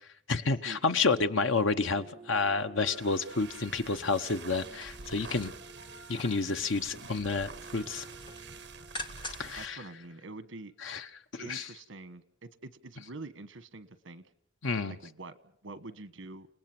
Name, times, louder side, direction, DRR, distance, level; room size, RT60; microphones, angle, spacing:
voice 1, 0.3-5.5 6.1-8.0 9.4-9.8 10.8-11.1 11.3-11.7 14.6-15.0, left 4 dB, 80° left, 9 dB, 1.0 m, -30 dB
sound 1, 1.3-10.4, right 1 dB, 20° right, 5.1 m, -52 dB
sound 2, 2.7-9.8, right 5 dB, 60° right, 1.5 m, -48 dB
sound 3, 4.6-6.6 7.0-7.5 7.8-9.6 10.0-10.1, left 1 dB, 25° left, 2.0 m, -45 dB
voice 2, 9.6-10.7 11.4-14.2 14.9-15.4 15.6-16.5, right 2 dB, 85° right, 14 dB, 1.3 m, -45 dB
30.0 x 18.5 x 6.0 m, 0.67 s
head